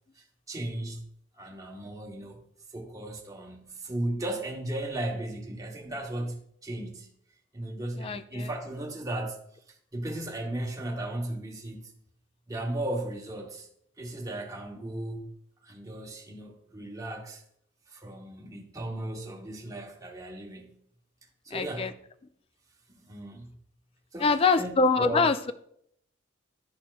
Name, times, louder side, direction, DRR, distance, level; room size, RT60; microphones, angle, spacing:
voice 1, 0.2-1.1 1.4-2.4 2.7-7.1 7.5-9.4 9.9-11.9 12.5-13.7 14.0-15.3 15.6-17.4 17.9-20.8 21.4-21.9 22.9-23.5 24.1-25.3, right 1 dB, 15° right, 0.9 m, -36 dB
voice 2, 8.0-8.5 21.5-21.9 24.2-25.5, left 4 dB, 30° left, 0.3 m, -24 dB
11.0 x 4.2 x 2.3 m
head